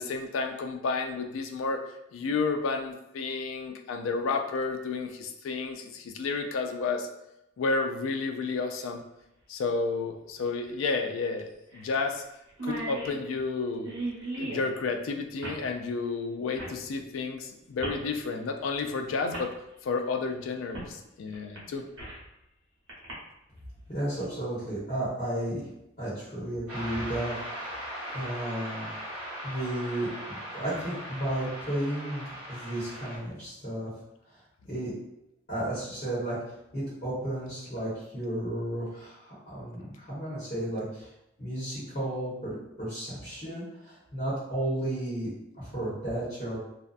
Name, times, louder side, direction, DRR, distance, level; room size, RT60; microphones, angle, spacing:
voice 1, 0.0-1.8 2.1-7.1 7.6-9.0 9.5-12.2 12.6-13.9 14.4-19.5 19.8-21.8, left 4 dB, 90° left, 5 dB, 0.3 m, -31 dB
sound 1, 8.8-8.9 10.6-10.7 11.1-11.2 11.7-11.9 12.2-12.3 12.5-14.7 15.4-15.6 16.6-16.8 17.8-18.0 18.9-19.0 19.3-19.5 20.7-20.9 21.3-22.3 22.9-23.1, right 2 dB, 75° right, 0.8 m, -37 dB
voice 2, 23.9-25.6 26.0-27.7 28.1-28.9 29.4-33.9 34.3-34.9 35.5-36.4 36.7-41.1 41.4-45.3 45.6-46.6, right 1 dB, 40° left, -11 dB, 1.0 m, -33 dB
sound 2, 26.7-33.2, equal, 5° right, 1.0 m, -39 dB
2.5 x 2.2 x 2.4 m, 0.85 s
head